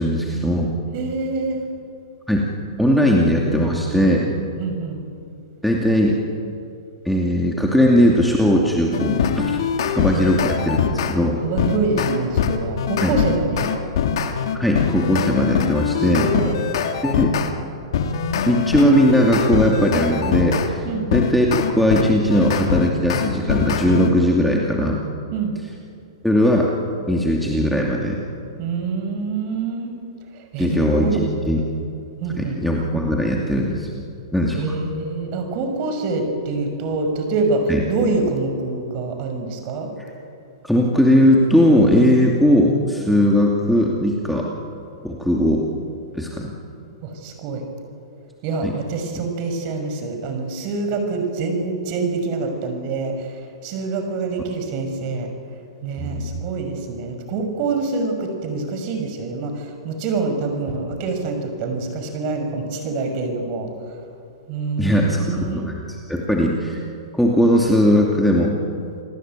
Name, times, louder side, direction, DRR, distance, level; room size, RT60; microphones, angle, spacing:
voice 1, 0.0-0.7 2.3-2.5 2.8-4.3 5.6-6.2 7.0-9.6 9.9-11.4 13.0-13.2 14.5-16.3 17.0-17.3 18.5-20.8 21.1-25.0 26.2-26.7 27.1-28.2 30.6-31.6 32.4-33.9 34.3-34.8 37.7-37.8 40.6-44.5 45.0-45.6 46.1-46.5 48.6-48.7 56.0-56.3 64.8-66.8 67.1-68.6, equal, ahead, -2 dB, 2.6 m, -18 dB
voice 2, 0.9-1.7 4.6-5.0 10.2-10.3 11.4-13.7 15.7-16.6 20.8-21.1 25.3-25.5 28.6-30.0 30.3-31.2 32.2-32.6 34.5-39.9 47.0-47.6 48.4-53.3 53.6-55.3 55.8-63.7 64.5-65.7, right 3 dB, 40° right, 5 dB, 6.0 m, -26 dB
sound 1, 8.9-11.2 11.6-17.5 17.9-20.7 21.1-24.1, left 7 dB, 65° left, 2.6 m, -22 dB
28.5 x 18.5 x 9.1 m, 2.5 s
hypercardioid pair, 135°, 3 cm